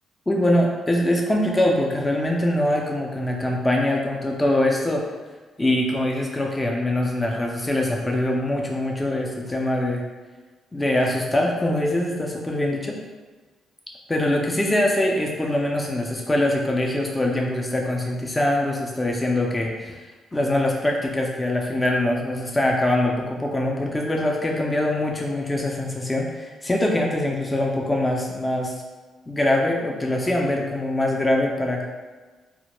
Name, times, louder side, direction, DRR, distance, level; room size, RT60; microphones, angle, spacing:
voice 1, 0.3-5.0 5.6-10.0 10.7-13.0 14.1-28.7 29.3-31.8, left 1 dB, 15° left, 0 dB, 0.3 m, -23 dB
2.1 x 2.0 x 2.9 m, 1.3 s
cardioid pair, 90°, 0 cm